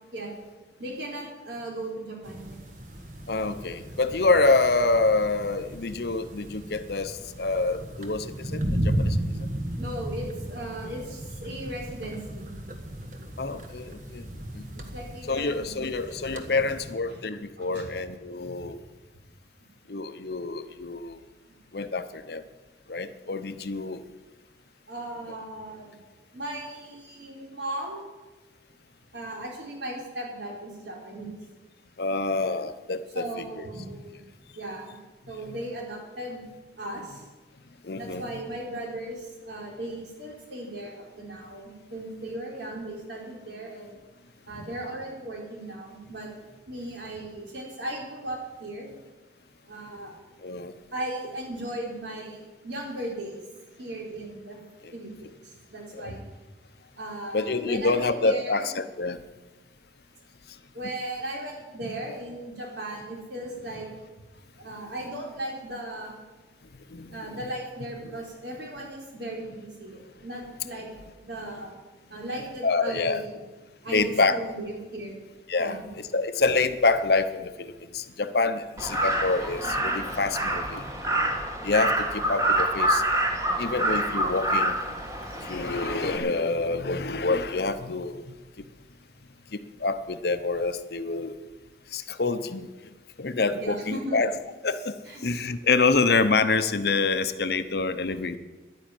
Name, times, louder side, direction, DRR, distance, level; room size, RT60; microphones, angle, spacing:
voice 1, 0.8-2.6 9.8-12.5 14.7-16.0 16.3-16.6 17.1-17.2 17.6-17.9 18.6-18.7 24.9-26.0 26.3-28.0 29.1-31.4 33.1-34.2 34.5-34.9 35.3-36.4 36.8-37.2 37.9-43.9 44.5-46.3 46.7-48.9 49.7-50.1 50.9-53.4 53.8-54.6 54.9-56.2 57.0-58.7 60.7-63.9 64.6-66.1 67.1-70.9 71.2-71.7 72.1-73.4 73.8-75.2 75.6-75.9 93.6-94.2 95.1-95.3, right 1 dB, 70° right, -1 dB, 4.0 m, -37 dB
sound 1, 2.2-16.9, right 1 dB, 45° right, 1.5 m, -35 dB
voice 2, 3.3-9.5 13.4-14.3 14.5-14.7 15.3-18.8 19.9-21.2 21.7-22.4 22.9-24.0 32.0-33.7 35.4-35.5 37.8-38.2 50.4-50.7 54.8-54.9 56.0-56.1 57.3-59.2 66.9-67.4 72.6-73.2 73.9-74.4 75.5-80.9 81.6-83.0 83.6-84.8 85.3-88.2 88.6-88.7 89.5-91.4 91.9-92.7 93.2-94.3 94.6-94.9 95.2-98.4, left 3 dB, 60° left, 11 dB, 0.8 m, -27 dB
Crow, 78.8-86.2, right 1 dB, 15° right, 1.6 m, -27 dB
11.5 x 9.6 x 9.2 m, 1.2 s
head